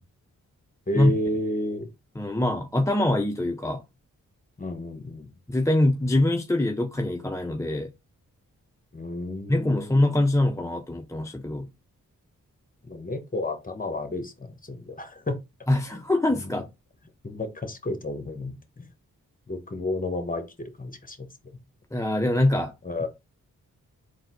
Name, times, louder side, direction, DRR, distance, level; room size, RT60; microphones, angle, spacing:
voice 1, 0.9-1.9 4.6-5.3 8.9-10.0 12.8-15.4 15.9-16.0 16.4-16.5 17.2-18.9 19.5-21.3 22.8-23.1, left 1 dB, 25° left, 1.1 m, -32 dB
voice 2, 2.2-3.8 5.5-7.9 9.5-11.7 15.7-16.7 21.9-22.7, left 1 dB, 10° left, 0.4 m, -24 dB
4.0 x 2.7 x 3.7 m
cardioid pair, 45°, 34 cm